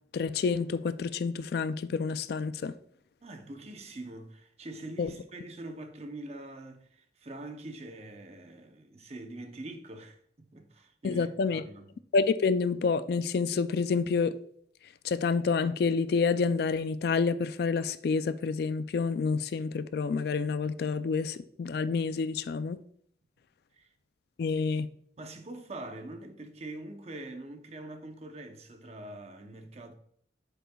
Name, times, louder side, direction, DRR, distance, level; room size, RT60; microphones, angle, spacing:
voice 1, 0.1-2.7 5.0-5.1 11.0-11.6 12.1-14.4 15.0-22.8 24.4-24.9, left 5 dB, 55° left, 0.3 m, -28 dB
voice 2, 3.2-11.9 23.7-23.9 24.5-24.6 25.2-29.9, right 2 dB, 35° right, 0.7 m, -44 dB
8.0 x 6.6 x 2.3 m
head